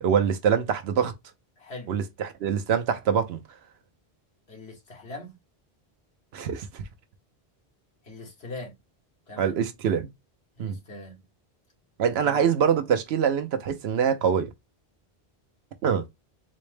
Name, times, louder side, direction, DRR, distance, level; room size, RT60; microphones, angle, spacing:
voice 1, 0.0-1.1 1.9-3.4 6.3-6.8 9.4-10.1 10.6-10.8 12.0-14.5 15.8-16.0, right 7 dB, 85° right, 0.9 m, -24 dB
voice 2, 1.6-2.0 4.5-5.3 8.0-8.7 9.3-9.5 10.6-11.2 12.2-12.5, left 2 dB, 80° left, 1.6 m, -41 dB
4.1 x 2.1 x 3.2 m
omnidirectional pair, 1.0 m